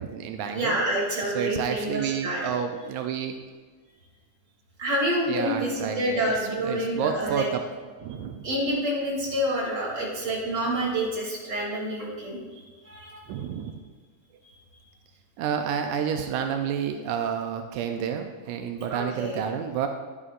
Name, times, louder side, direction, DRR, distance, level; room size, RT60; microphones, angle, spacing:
voice 1, 0.0-0.8 1.4-3.3 5.3-6.2 6.6-7.6 8.0-8.5 13.3-13.7 15.4-19.9, right 7 dB, 85° right, 5 dB, 2.0 m, -30 dB
voice 2, 0.5-2.6 4.8-7.4 8.4-13.2 14.7-14.8 18.9-19.4, right 1 dB, 35° right, -5 dB, 3.2 m, -28 dB
11.0 x 10.5 x 2.5 m, 1.4 s
omnidirectional pair, 3.3 m